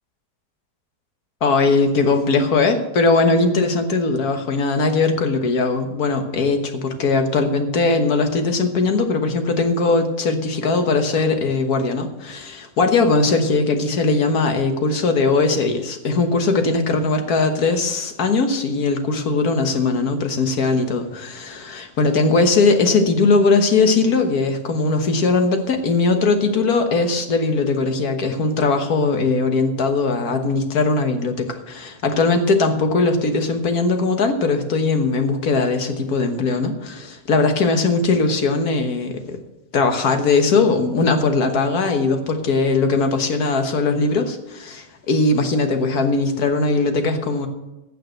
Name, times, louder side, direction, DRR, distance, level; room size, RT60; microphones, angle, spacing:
voice 1, 1.4-39.4 39.7-47.5, left 3 dB, 80° left, 6 dB, 1.8 m, -19 dB
15.5 x 5.6 x 7.7 m, 0.99 s
omnidirectional pair, 1.6 m